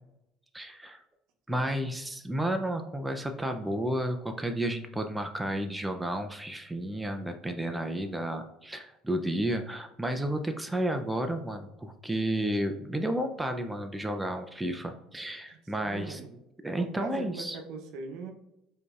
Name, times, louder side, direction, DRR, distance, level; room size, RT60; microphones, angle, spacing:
voice 1, 0.5-1.0 1.5-16.2 16.6-17.6, right 1 dB, 5° right, 5 dB, 0.4 m, -32 dB
voice 2, 1.5-1.9 15.5-16.4 16.8-18.3, right 4 dB, 70° right, 3 dB, 0.7 m, -41 dB
4.9 x 2.7 x 2.4 m, 0.84 s
supercardioid pair, 100°, 0 cm